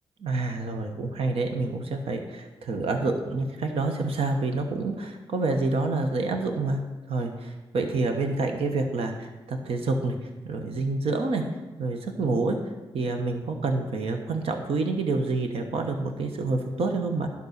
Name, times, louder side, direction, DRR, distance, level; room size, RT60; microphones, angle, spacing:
voice 1, 0.2-6.8 7.1-10.2 10.4-11.4 11.8-12.6 12.9-17.3, right 3 dB, 85° right, 4 dB, 1.1 m, -28 dB
11.0 x 5.4 x 6.6 m, 1.1 s
cardioid pair, 55°, 10 cm